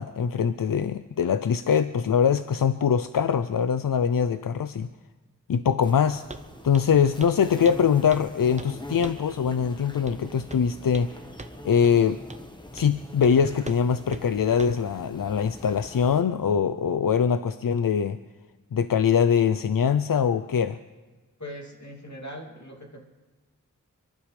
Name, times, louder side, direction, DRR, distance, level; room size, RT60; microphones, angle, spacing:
voice 1, 0.0-4.9 5.5-6.2 6.6-11.2 11.6-12.2 12.7-18.2 18.7-20.8, left 7 dB, 90° left, 11 dB, 0.5 m, -23 dB
sound 1, 5.8-16.2, left 1 dB, 15° left, 1.3 m, -43 dB
Walk footsteps, 6.3-6.5 6.7-6.9 7.2-7.4 7.7-8.3 8.6-8.8 9.0-9.3 10.1-10.2 10.5-11.1 11.4-11.6 11.8-12.0 12.3-12.5 12.8-12.9 13.2-13.4 13.7-13.8 14.1-14.2 14.6-14.8, right 2 dB, 20° right, 0.7 m, -41 dB
voice 2, 21.4-23.0, equal, 60° left, 0 dB, 2.6 m, -40 dB
29.5 x 12.0 x 3.3 m, 1.2 s
wide cardioid pair, 55°, 33 cm